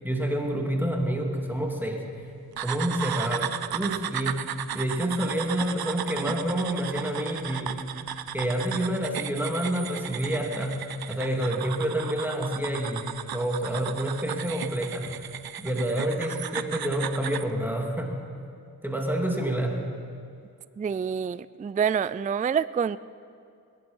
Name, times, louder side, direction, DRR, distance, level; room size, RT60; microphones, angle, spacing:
voice 1, 0.0-2.1 2.6-8.0 8.3-15.3 15.6-18.2 18.8-19.9, right 1 dB, 5° right, 1 dB, 2.6 m, -28 dB
sound 1, 2.6-17.5, right 10 dB, 70° right, 0.6 m, -35 dB
voice 2, 20.8-23.0, right 7 dB, 20° right, 17 dB, 0.3 m, -27 dB
22.0 x 11.0 x 5.4 m, 2.4 s
cardioid pair, 40°, 38 cm